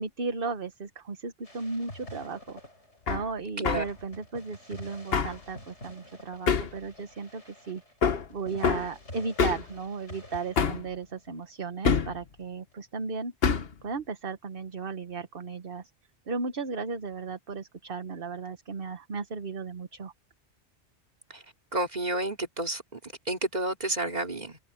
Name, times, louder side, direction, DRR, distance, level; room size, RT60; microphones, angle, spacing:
voice 1, 0.0-2.6 3.1-7.8 8.3-13.3 13.8-15.9 16.3-20.1, right 4 dB, 55° right, 1.3 m, -35 dB
sound 1, 1.4-3.3 3.7-11.4, left 1 dB, 80° left, 8.0 m, -48 dB
Hammer, 3.1-3.3 3.6-3.9 5.1-5.4 6.5-6.8 8.0-8.3 8.6-8.9 9.4-9.7 10.6-10.9 11.8-12.2 13.4-13.7, left 6 dB, 60° left, 1.3 m, -25 dB
voice 2, 21.7-24.6, right 2 dB, 40° right, 3.1 m, -31 dB
omnidirectional pair, 1.2 m